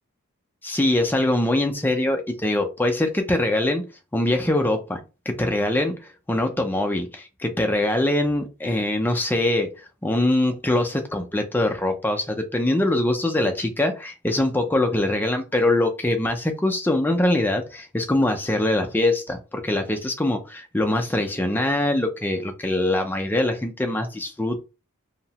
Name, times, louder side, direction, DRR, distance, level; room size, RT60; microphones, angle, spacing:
voice 1, 0.6-3.8 4.1-5.0 5.3-24.6, left 1 dB, 10° left, 0.3 m, -23 dB
2.7 x 2.0 x 2.7 m
head